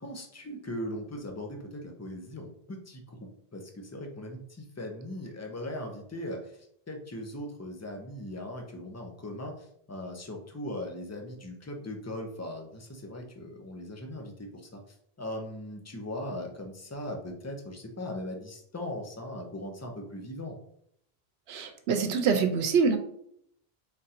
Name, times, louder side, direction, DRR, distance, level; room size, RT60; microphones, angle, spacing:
voice 1, 0.0-6.4 6.9-14.8 15.2-20.5, left 1 dB, 20° left, 2 dB, 0.6 m, -39 dB
voice 2, 21.5-23.0, right 5 dB, 80° right, 7 dB, 0.9 m, -25 dB
3.7 x 2.5 x 4.2 m, 0.70 s
omnidirectional pair, 1.1 m